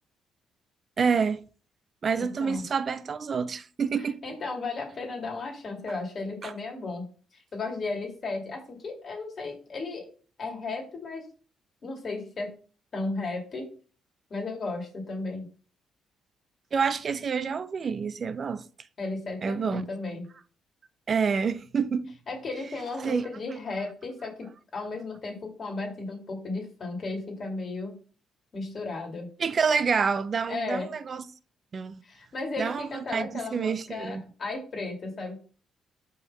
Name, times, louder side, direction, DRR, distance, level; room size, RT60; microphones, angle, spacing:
voice 1, 1.0-1.4 2.0-4.2 6.4-6.5 16.7-18.7 19.4-19.8 21.1-22.1 23.0-23.3 29.4-31.2 31.7-32.0 32.6-34.3, right 5 dB, 45° right, 0.5 m, -28 dB
voice 2, 2.2-2.6 4.2-7.1 7.3-10.1 10.4-11.2 11.8-12.5 12.9-13.7 14.3-15.5 19.0-20.2 22.3-28.0 28.5-29.3 30.5-30.9 32.0-35.4, left 3 dB, 45° left, 2.4 m, -35 dB
5.3 x 4.0 x 5.4 m
cardioid pair, 90°, 0 cm